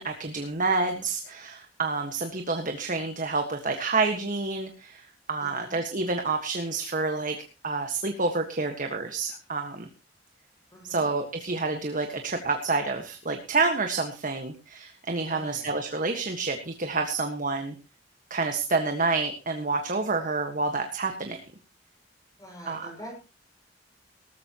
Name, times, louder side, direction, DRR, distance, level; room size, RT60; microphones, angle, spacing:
voice 1, 0.0-7.4 7.6-9.9 10.8-17.7 18.3-21.4 22.7-22.9, right 3 dB, 45° right, 5 dB, 1.6 m, -28 dB
voice 2, 5.4-5.8 10.7-11.1 15.3-15.7 22.4-23.2, equal, 20° left, 0 dB, 6.6 m, -45 dB
18.5 x 14.5 x 3.0 m, 0.31 s
head